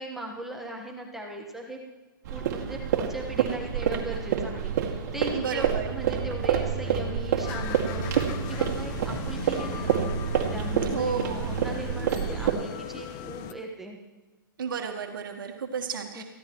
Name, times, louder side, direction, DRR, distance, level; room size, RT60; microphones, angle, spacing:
voice 1, 0.0-1.8 2.3-8.1 8.4-10.2 10.5-14.0 16.1-16.2, right 1 dB, ahead, -1 dB, 1.3 m, -39 dB
sound 1, 2.2-12.5, right 8 dB, 50° right, 2.1 m, -28 dB
voice 2, 5.3-5.9 10.9-11.4 14.6-16.2, right 6 dB, 70° right, 3 dB, 1.5 m, -31 dB
sound 2, 7.4-13.5, left 9 dB, 30° left, 0.7 m, -39 dB
20.0 x 15.0 x 3.1 m, 1.2 s
hypercardioid pair, 140°, 12 cm